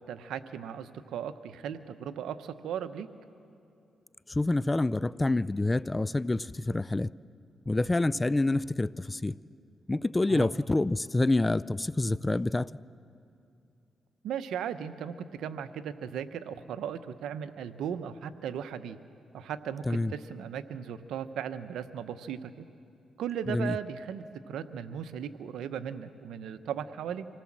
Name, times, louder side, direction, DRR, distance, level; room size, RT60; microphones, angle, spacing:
voice 1, 0.1-3.1 10.3-10.5 14.2-19.0 19.3-22.7 23.2-27.3, right 8 dB, 90° right, 0.9 m, -37 dB
voice 2, 4.3-7.1 7.7-9.3 9.9-12.7 19.9-20.1 23.5-23.8, left 2 dB, 20° left, 0.4 m, -27 dB
26.0 x 18.0 x 7.4 m
cardioid pair, 70°, 0 cm